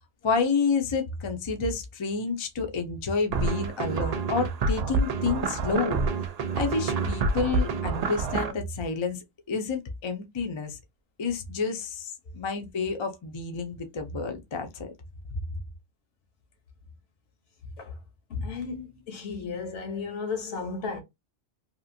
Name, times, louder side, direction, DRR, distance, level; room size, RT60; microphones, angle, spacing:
voice 1, 0.2-6.0 6.5-9.2 9.5-10.8 11.2-14.9, left 4 dB, 40° left, 0.4 m, -29 dB
sound 1, 3.3-8.5, right 4 dB, 75° right, 0.3 m, -27 dB
voice 2, 18.3-21.0, left 4 dB, 75° left, 1.2 m, -34 dB
2.9 x 2.4 x 2.6 m
omnidirectional pair, 1.2 m